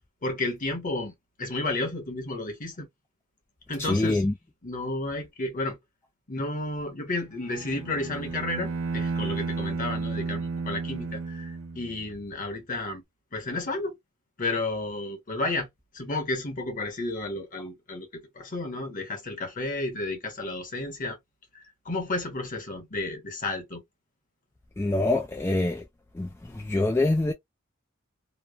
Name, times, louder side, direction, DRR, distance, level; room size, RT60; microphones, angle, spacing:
voice 1, 0.2-1.1 1.4-2.9 3.7-4.2 4.6-5.8 6.3-13.0 13.3-13.9 14.4-15.7 15.9-18.1 18.4-21.2 21.5-23.8, left 2 dB, 40° left, 1.0 m, -32 dB
voice 2, 3.8-4.3 24.8-25.8 26.2-27.3, left 2 dB, 10° left, 0.3 m, -25 dB
Bowed string instrument, 7.4-12.2, right 4 dB, 80° right, 0.8 m, -32 dB
3.0 x 2.1 x 2.2 m
head